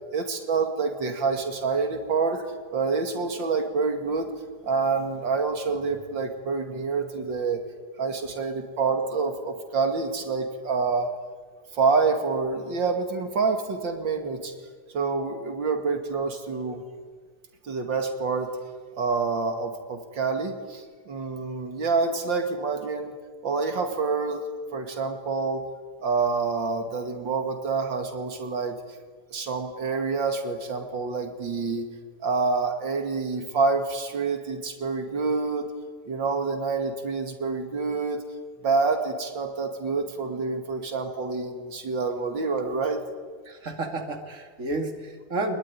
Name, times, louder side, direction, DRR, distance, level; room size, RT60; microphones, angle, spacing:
voice 1, 0.1-4.3 4.6-7.6 8.0-11.1 11.7-14.5 14.9-16.8 17.6-18.5 19.0-23.2 23.4-24.4 24.7-25.7 26.0-28.8 29.3-31.9 32.2-35.7 36.1-38.2 38.6-43.0, right 4 dB, 90° right, 5 dB, 2.9 m, -27 dB
voice 2, 43.4-45.6, right 2 dB, 40° right, 4 dB, 2.8 m, -31 dB
24.0 x 21.0 x 9.9 m, 1.5 s
omnidirectional pair, 2.0 m